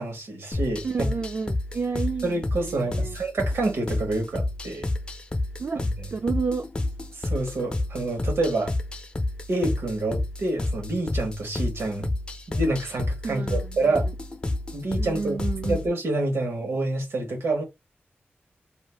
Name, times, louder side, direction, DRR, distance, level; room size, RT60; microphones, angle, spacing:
voice 1, 0.0-1.1 2.2-4.9 5.7-6.1 7.1-8.7 9.5-12.1 12.5-14.1 14.7-15.4 15.7-17.6, right 2 dB, 90° right, 1.1 m, -27 dB
sound 1, 0.5-15.9, left 2 dB, 25° left, 0.4 m, -30 dB
voice 2, 0.8-3.2 5.6-6.7 13.2-14.0 15.0-15.8, right 5 dB, 55° right, 0.3 m, -31 dB
2.5 x 2.4 x 3.2 m
wide cardioid pair, 150°, 4 cm